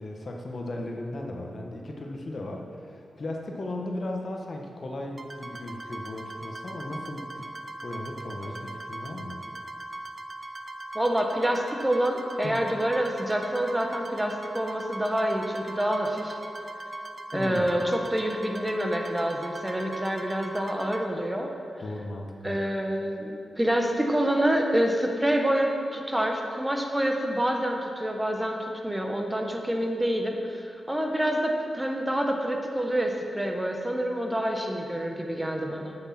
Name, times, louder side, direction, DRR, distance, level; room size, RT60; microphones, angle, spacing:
voice 1, 0.0-7.5 7.8-9.4 12.4-12.6 17.3-17.7 21.8-22.6, left 1 dB, 55° left, 1 dB, 1.2 m, -36 dB
sound 1, 5.2-21.0, right 2 dB, 40° right, 0.7 m, -40 dB
voice 2, 10.9-16.4 17.3-21.5 22.4-36.0, equal, 15° right, 3 dB, 1.3 m, -27 dB
8.0 x 7.9 x 5.9 m, 2.5 s
cardioid pair, 50°, 0 cm